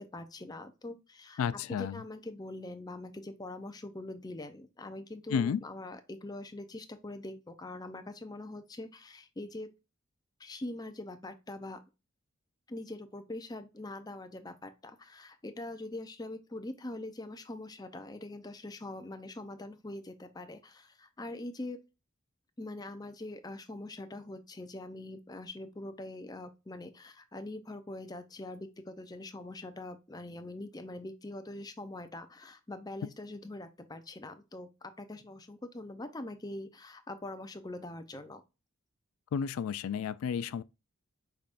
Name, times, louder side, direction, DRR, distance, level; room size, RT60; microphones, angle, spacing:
voice 1, 0.0-1.4 1.7-9.7 10.4-11.8 12.7-21.8 22.6-38.4, left 2 dB, 20° left, 0.5 m, -43 dB
voice 2, 1.4-2.0 5.3-5.6 39.3-40.6, left 7 dB, 90° left, 0.3 m, -32 dB
5.7 x 3.5 x 2.4 m
head